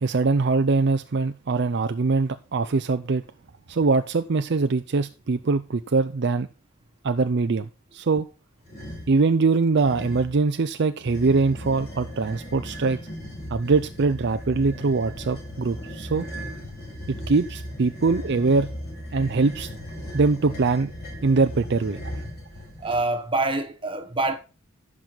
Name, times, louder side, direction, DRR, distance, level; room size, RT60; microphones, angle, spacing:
voice 1, 0.0-3.2 3.7-6.5 7.0-8.2 9.1-13.0 13.5-16.3 17.1-18.7 19.1-19.7 20.1-20.9 21.2-22.0, right 4 dB, 55° right, 0.5 m, -22 dB
sound 1, 8.6-9.2 9.8-10.4 11.0-23.0, equal, 50° left, 5.5 m, -37 dB
voice 2, 22.8-24.4, right 2 dB, 25° right, 1.4 m, -25 dB
15.0 x 6.2 x 4.0 m
head